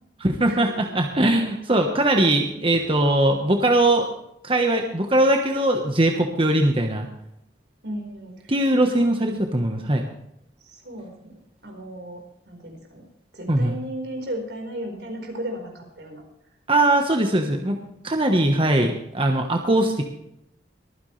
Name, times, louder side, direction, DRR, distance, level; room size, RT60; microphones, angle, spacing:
voice 1, 0.2-4.1 4.4-7.1 8.5-10.0 13.5-13.8 16.7-17.8 18.0-20.0, right 1 dB, 30° right, 3 dB, 1.3 m, -20 dB
voice 2, 7.8-8.5 8.8-9.0 10.6-11.3 11.6-13.0 13.3-16.2 17.1-17.6, right 1 dB, 75° right, 2 dB, 4.7 m, -35 dB
23.5 x 9.7 x 3.3 m, 0.80 s
head